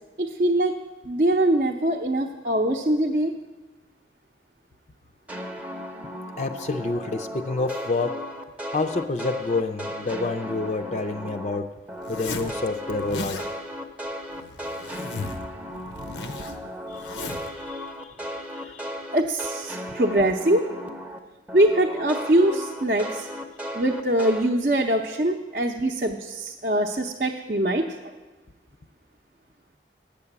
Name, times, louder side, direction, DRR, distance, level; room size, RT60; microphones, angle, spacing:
voice 1, 0.2-0.7 1.1-3.3 19.1-20.7 21.5-23.3 23.7-28.1, right 1 dB, 45° right, -1 dB, 0.6 m, -23 dB
sound 1, 5.3-11.6 11.9-21.2 21.5-24.5, equal, 10° right, 0.6 m, -36 dB
voice 2, 6.4-8.2 8.7-11.7 12.1-13.4 16.9-17.9 18.6-18.9, left 3 dB, 40° left, 5 dB, 0.5 m, -28 dB
Zipper (clothing), 12.0-12.5 12.9-13.5 14.3-15.5 15.7-17.5, left 3 dB, 90° left, 0.9 m, -36 dB
8.8 x 6.9 x 8.6 m, 1.2 s
head